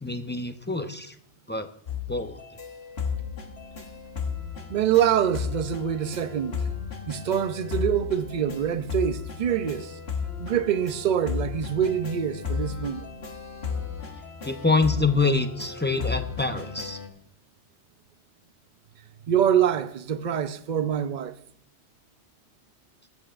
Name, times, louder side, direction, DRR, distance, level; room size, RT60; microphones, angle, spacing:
voice 1, 0.0-1.1 1.5-1.7 2.1-2.4 14.4-17.0, left 3 dB, 15° left, 0.4 m, -26 dB
sound 1, 1.9-17.1, left 6 dB, 60° left, 1.6 m, -34 dB
voice 2, 4.7-6.6 7.1-10.0 10.4-13.1 19.3-21.3, right 9 dB, 50° right, 0.6 m, -25 dB
20.0 x 8.2 x 2.5 m
omnidirectional pair, 1.2 m